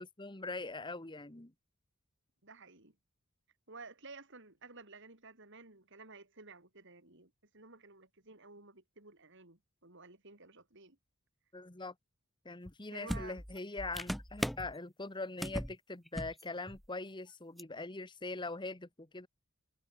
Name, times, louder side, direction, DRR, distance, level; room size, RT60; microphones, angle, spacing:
voice 1, 0.0-1.5 11.5-11.9 12.4-19.3, left 3 dB, 20° left, 1.4 m, -42 dB
voice 2, 2.4-2.9 3.7-11.0 12.9-13.4, right 3 dB, 55° right, 6.1 m, -53 dB
sound 1, 12.7-12.8 13.1-14.7 15.4-15.7 16.1-16.4 16.7-16.8 17.6-17.7, equal, ahead, 0.9 m, -38 dB
head